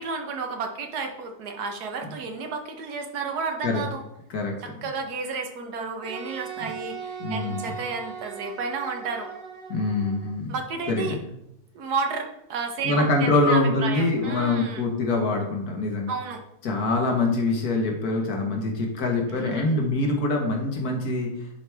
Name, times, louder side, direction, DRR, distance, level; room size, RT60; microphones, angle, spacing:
voice 1, 0.0-4.0 4.6-9.3 10.5-11.2 11.7-14.8 16.1-16.4 19.3-19.9, right 4 dB, 85° right, 4 dB, 1.5 m, -32 dB
Wind instrument woodwind instrument, 6.0-10.3, right 7 dB, 60° right, 2.0 m, -38 dB
voice 2, 7.2-7.7 9.7-10.6 10.9-11.2 12.8-16.1 16.6-21.3, left 2 dB, 75° left, 1 dB, 1.6 m, -24 dB
9.9 x 4.6 x 3.4 m, 0.81 s
omnidirectional pair, 1.7 m